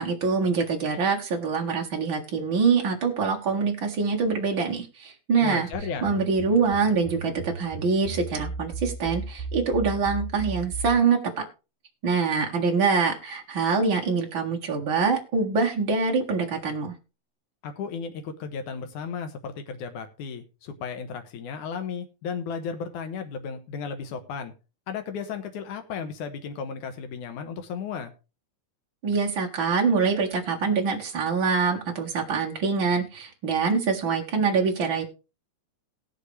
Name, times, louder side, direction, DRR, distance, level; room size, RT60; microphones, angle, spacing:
voice 1, 0.0-5.7 6.0-11.4 12.0-16.9 29.0-35.1, right 5 dB, 45° right, 0 dB, 2.4 m, -24 dB
voice 2, 5.4-6.1 17.6-24.5 24.9-28.1, left 6 dB, 85° left, 7 dB, 2.9 m, -34 dB
sound 1, 5.7-11.0, right 4 dB, 10° left, 6.5 m, -35 dB
19.0 x 6.7 x 3.3 m, 0.31 s
omnidirectional pair, 3.4 m